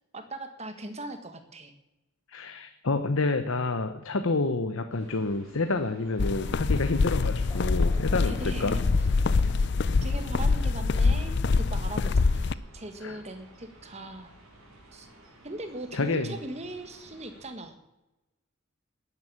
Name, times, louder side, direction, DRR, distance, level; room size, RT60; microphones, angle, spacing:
voice 1, 0.1-1.7 8.3-8.9 9.2-9.3 10.0-14.3 14.9-15.1 15.4-17.8, right 2 dB, 30° right, 7 dB, 1.6 m, -40 dB
voice 2, 2.3-8.3 8.6-8.7 12.0-12.1 13.0-13.2 15.9-16.4, left 3 dB, 70° left, 7 dB, 0.9 m, -28 dB
sound 1, 4.9-17.5, right 1 dB, 85° right, 4.7 m, -54 dB
sound 2, 6.2-12.5, left 4 dB, 55° left, 0.4 m, -25 dB
Thunder, 6.3-11.1, left 1 dB, 15° left, 1.0 m, -47 dB
11.0 x 10.5 x 8.9 m, 0.99 s
head